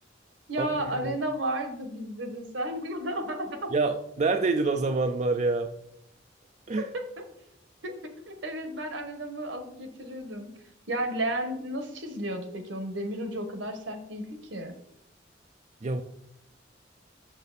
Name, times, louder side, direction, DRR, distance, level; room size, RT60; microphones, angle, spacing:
voice 1, 0.5-3.7 6.8-7.2 7.8-10.5 10.9-14.7, right 1 dB, 75° right, 7 dB, 1.3 m, -33 dB
voice 2, 3.7-5.7 6.7-6.9 15.8-16.0, right 3 dB, 40° right, 6 dB, 0.4 m, -26 dB
7.1 x 6.8 x 4.1 m, 0.76 s
head